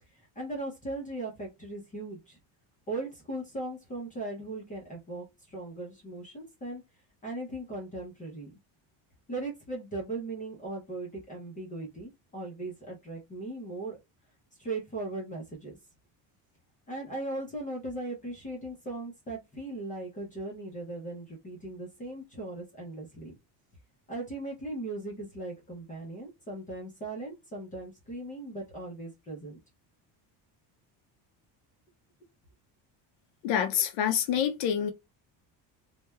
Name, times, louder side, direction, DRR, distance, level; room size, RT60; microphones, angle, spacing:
voice 1, 0.1-2.4 2.9-6.8 7.2-8.5 9.3-14.0 14.6-15.8 16.9-23.3 24.1-29.6, right 2 dB, 20° left, 0.5 m, -38 dB
voice 2, 33.4-34.9, left 9 dB, 70° left, 0.5 m, -27 dB
3.0 x 2.1 x 2.2 m
cardioid pair, 170°, 46 cm